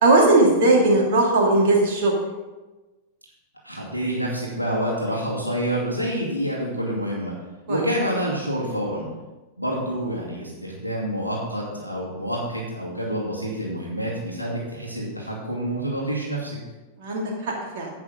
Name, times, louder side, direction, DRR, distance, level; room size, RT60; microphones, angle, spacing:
voice 1, 0.0-2.1 7.7-7.8 17.0-17.9, right 2 dB, 50° right, -1 dB, 2.6 m, -18 dB
voice 2, 3.6-7.3 7.7-9.1 9.6-16.6, equal, 90° right, -4 dB, 2.3 m, -27 dB
10.5 x 8.7 x 3.9 m, 1.2 s
figure-of-eight pair, 95°, 0 cm